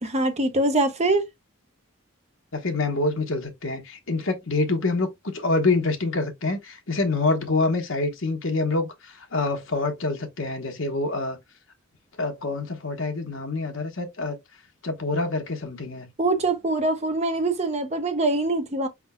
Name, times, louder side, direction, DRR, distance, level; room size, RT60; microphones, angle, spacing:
voice 1, 0.0-1.3 16.2-18.9, right 2 dB, 30° right, 0.7 m, -23 dB
voice 2, 2.5-11.4 12.2-14.4 14.8-16.1, left 3 dB, 65° left, 1.1 m, -26 dB
5.5 x 3.6 x 2.2 m
head